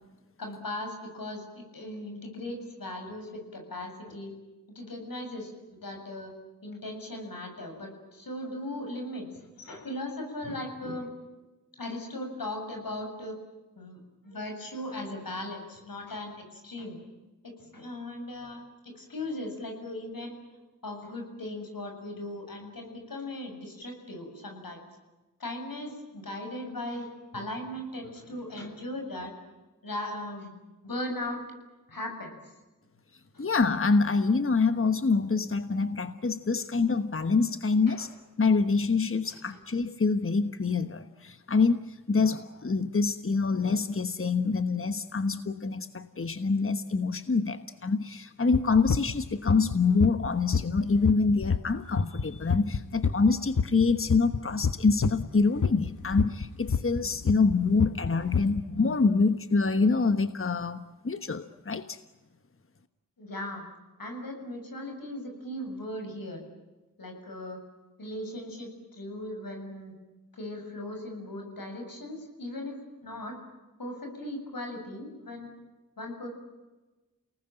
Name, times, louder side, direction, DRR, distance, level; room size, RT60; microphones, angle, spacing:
voice 1, 0.4-4.3 4.7-5.5 5.8-6.3 6.6-11.1 11.8-13.4 13.8-17.0 17.4-20.4 20.8-24.8 25.4-29.3 29.8-30.5 30.8-31.4 31.9-32.6 33.3-33.5 37.9-38.1 39.2-39.6 63.2-63.7 64.0-66.4 67.0-67.6 68.0-69.9 70.3-73.4 73.8-75.6 76.0-76.3, left 1 dB, 90° left, 3 dB, 7.3 m, -38 dB
voice 2, 33.4-38.1 38.4-62.0, left 4 dB, 40° left, 10 dB, 1.3 m, -26 dB
sound 1, 48.5-55.3 55.6-58.6, left 5 dB, 60° left, 1.2 m, -27 dB
29.5 x 19.5 x 9.1 m, 1.1 s
wide cardioid pair, 60°, 33 cm